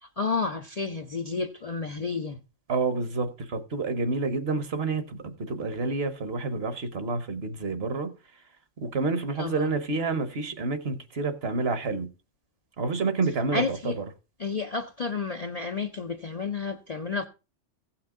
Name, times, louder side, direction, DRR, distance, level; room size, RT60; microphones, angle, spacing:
voice 1, 0.0-2.4 9.4-9.7 13.5-14.0 14.4-17.3, left 4 dB, 45° left, 0.5 m, -31 dB
voice 2, 2.7-8.1 8.8-12.1 12.8-13.9, right 3 dB, 55° right, 1.2 m, -29 dB
16.0 x 5.9 x 3.6 m
omnidirectional pair, 1.3 m